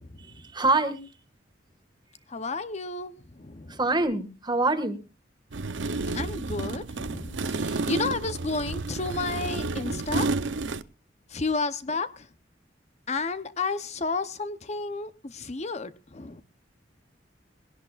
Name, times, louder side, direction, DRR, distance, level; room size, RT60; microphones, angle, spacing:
voice 1, 0.2-1.0 3.7-5.0, right 2 dB, 25° right, 1.8 m, -25 dB
voice 2, 2.3-3.1 3.4-3.7 6.1-10.3 11.3-12.1 13.1-16.4, left 3 dB, 40° left, 0.8 m, -31 dB
sound 1, 5.5-10.8, right 3 dB, 85° right, 0.7 m, -30 dB
22.0 x 17.0 x 2.4 m
head